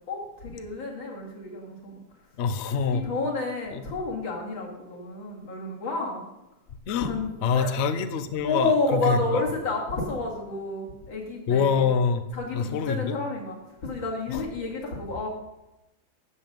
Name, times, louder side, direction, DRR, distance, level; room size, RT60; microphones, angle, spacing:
voice 1, 0.1-2.0 2.9-6.3 7.0-7.7 8.4-11.9 12.3-13.6 13.8-15.3, left 2 dB, 65° left, -3 dB, 3.4 m, -30 dB
voice 2, 2.4-3.1 3.7-3.8 6.9-7.1 7.4-9.4 11.5-12.2 12.5-13.2 14.3-14.4, left 6 dB, 80° left, 10 dB, 0.6 m, -25 dB
13.0 x 7.7 x 5.3 m, 0.95 s
omnidirectional pair, 2.3 m